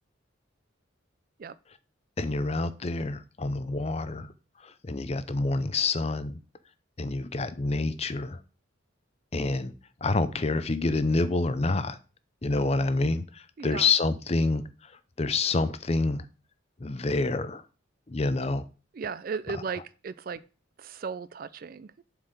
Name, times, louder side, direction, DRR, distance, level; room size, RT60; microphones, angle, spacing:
voice 1, 2.2-4.3 4.8-6.4 7.0-8.4 9.3-9.7 10.0-12.0 12.4-14.7 15.2-16.2 16.8-17.6 18.1-18.6 19.5-19.6, left 3 dB, 30° left, 0.5 m, -27 dB
voice 2, 18.9-20.4 20.8-22.0, right 5 dB, 45° right, 0.4 m, -36 dB
7.3 x 4.6 x 5.1 m
head